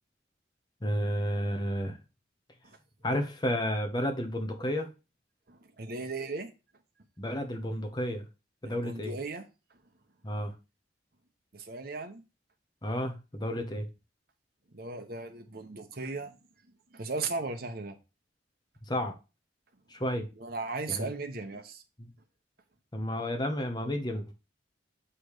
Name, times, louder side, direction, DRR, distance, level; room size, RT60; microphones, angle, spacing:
voice 1, 0.8-2.0 3.0-4.9 7.2-8.2 8.6-9.1 10.2-10.5 12.8-13.9 18.9-19.2 19.9-20.3 20.9-21.1 22.0-22.1 22.9-24.3, equal, 25° left, 1.1 m, -31 dB
voice 2, 5.5-6.5 8.6-9.4 11.5-12.2 14.7-16.4 16.9-18.0 20.3-21.8, right 3 dB, 55° right, 1.1 m, -37 dB
7.8 x 3.4 x 4.9 m
head